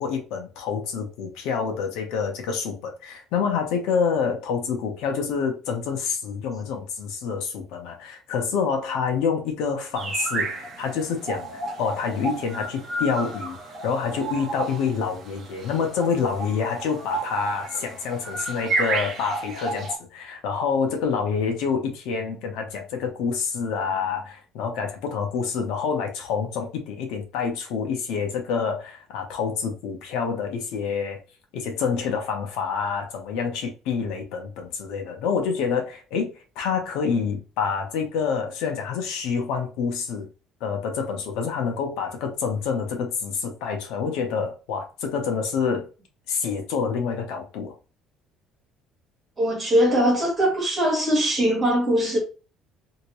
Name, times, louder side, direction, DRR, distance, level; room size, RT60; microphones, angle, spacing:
voice 1, 0.0-13.6 13.8-31.2 31.5-40.3 40.6-45.9 46.3-47.7, left 6 dB, 80° left, 0.9 m, -27 dB
sound 1, 9.9-20.0, right 3 dB, 30° right, 0.9 m, -32 dB
voice 2, 49.4-52.2, equal, 15° right, 1.6 m, -21 dB
2.9 x 2.8 x 3.0 m
cardioid pair, 160°, 0 cm